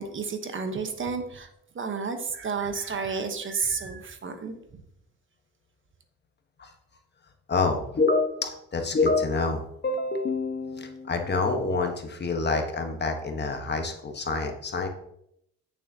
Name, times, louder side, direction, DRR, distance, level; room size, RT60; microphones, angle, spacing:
voice 1, 0.0-1.5 1.7-4.6, right 5 dB, 40° right, 7 dB, 1.0 m, -31 dB
voice 2, 7.5-14.9, left 3 dB, 35° left, 4 dB, 1.2 m, -27 dB
8.5 x 7.0 x 2.8 m, 0.76 s
cardioid pair, 90°, 30 cm